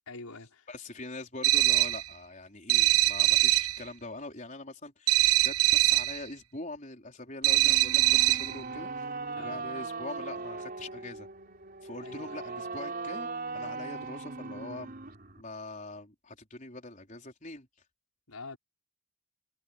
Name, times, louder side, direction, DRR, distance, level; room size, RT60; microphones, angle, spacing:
voice 1, 0.1-0.7 9.4-9.6 12.0-12.4 18.3-18.6, left 3 dB, 90° left, 5.5 m, -45 dB
voice 2, 0.7-8.9 9.4-11.3 11.8-13.3 13.5-14.9 15.4-17.7, left 2 dB, 35° left, 4.7 m, -43 dB
sound 1, 1.4-2.1 2.7-3.8 5.1-6.2 7.4-8.6, right 15 dB, 85° right, 1.5 m, -23 dB
sound 2, 7.4-15.4, right 3 dB, 40° right, 4.1 m, -39 dB
head